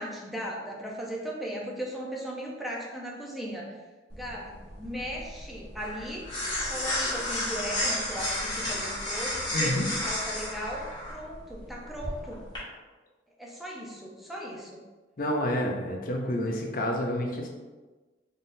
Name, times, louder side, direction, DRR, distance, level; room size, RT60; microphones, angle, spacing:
voice 1, 0.0-3.8 4.1-6.3 6.7-12.4 13.4-14.8, equal, ahead, -4 dB, 0.7 m, -37 dB
sound 1, 4.1-12.6, left 1 dB, 25° left, 1.2 m, -32 dB
voice 2, 9.5-9.9 15.2-17.5, left 1 dB, 50° left, 1 dB, 0.7 m, -29 dB
4.0 x 3.6 x 2.7 m, 1.3 s
head